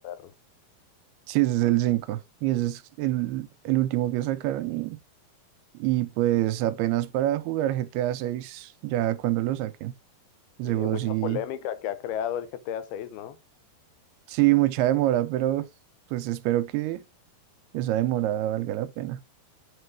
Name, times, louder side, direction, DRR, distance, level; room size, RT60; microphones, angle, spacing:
voice 1, 1.3-5.0 5.8-9.9 10.6-11.4 14.3-15.7 16.1-17.0 17.7-19.2, right 15 dB, 85° right, 2.5 m, -26 dB
voice 2, 10.6-13.4, left 10 dB, 80° left, 2.7 m, -33 dB
8.5 x 4.3 x 4.7 m
omnidirectional pair, 4.6 m